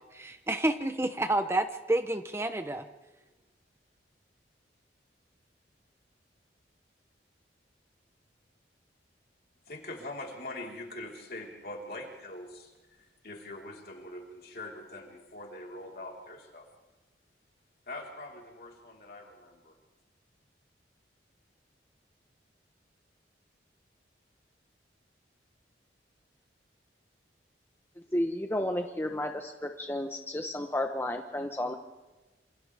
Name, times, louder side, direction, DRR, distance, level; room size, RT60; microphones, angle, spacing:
voice 1, 0.0-2.9, right 1 dB, 15° right, 9 dB, 0.7 m, -29 dB
voice 2, 9.7-16.7 17.9-19.8, left 2 dB, 55° left, -1 dB, 4.2 m, -43 dB
voice 3, 28.1-31.8, left 1 dB, 15° left, 4 dB, 1.0 m, -32 dB
27.5 x 27.5 x 3.5 m, 1.2 s
head